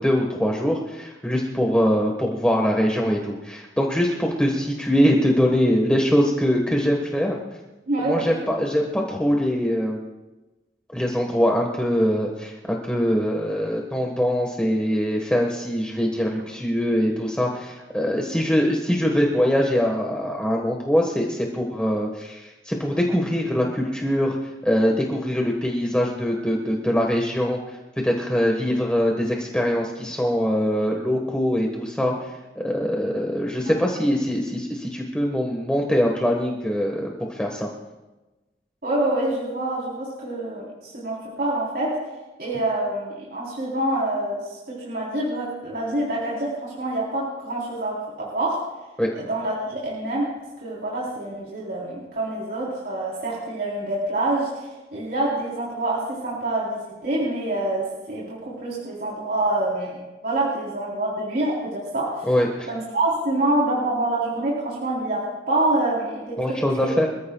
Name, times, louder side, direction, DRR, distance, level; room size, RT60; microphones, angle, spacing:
voice 1, 0.0-7.4 8.0-10.0 10.9-24.4 24.6-27.6 28.0-32.1 32.5-37.7 49.0-49.1 62.3-62.7 66.4-67.1, equal, 5° left, 0 dB, 1.4 m, -23 dB
voice 2, 7.9-8.4 33.6-34.0 38.8-42.0 42.4-48.6 49.1-50.3 50.6-62.3 62.7-66.9, right 1 dB, 60° right, -6 dB, 3.9 m, -26 dB
26.0 x 14.5 x 2.4 m, 1.1 s
head